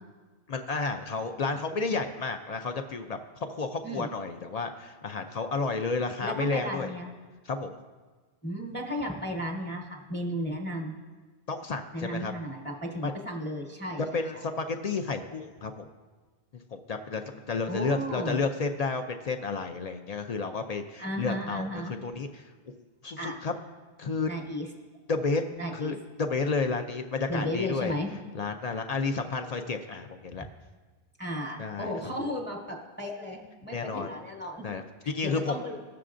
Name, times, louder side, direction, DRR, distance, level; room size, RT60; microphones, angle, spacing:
voice 1, 0.5-6.9 7.4-7.8 11.5-12.3 13.0-13.1 14.1-15.9 16.7-22.4 23.0-23.5 24.0-24.3 25.1-25.4 25.7-27.9 28.3-30.4 31.6-32.1 33.7-34.1 34.6-35.5, left 4 dB, 55° left, 6 dB, 0.4 m, -31 dB
voice 2, 6.2-7.1 8.4-11.0 11.9-14.2 17.7-18.4 21.0-21.9 23.2-23.4 24.3-24.7 25.6-25.9 27.3-28.1 31.2-34.7 35.2-35.7, equal, 10° left, 0 dB, 0.9 m, -34 dB
15.5 x 6.7 x 2.5 m, 1.4 s
omnidirectional pair, 1.1 m